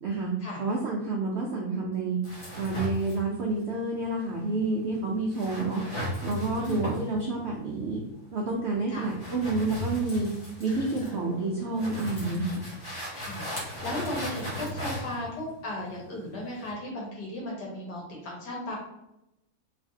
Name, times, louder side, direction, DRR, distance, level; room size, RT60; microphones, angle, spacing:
voice 1, 0.0-0.3 0.6-2.2 2.5-5.8 6.2-8.0 8.3-10.3 10.6-12.6, right 3 dB, 75° right, -2 dB, 0.6 m, -29 dB
sound 1, 2.2-16.7, equal, 50° left, 1.4 m, -37 dB
voice 2, 6.6-7.0 8.9-9.1 10.7-11.2 13.1-18.8, left 1 dB, 90° left, -3 dB, 1.8 m, -36 dB
3.2 x 3.2 x 2.7 m, 0.89 s
omnidirectional pair, 1.7 m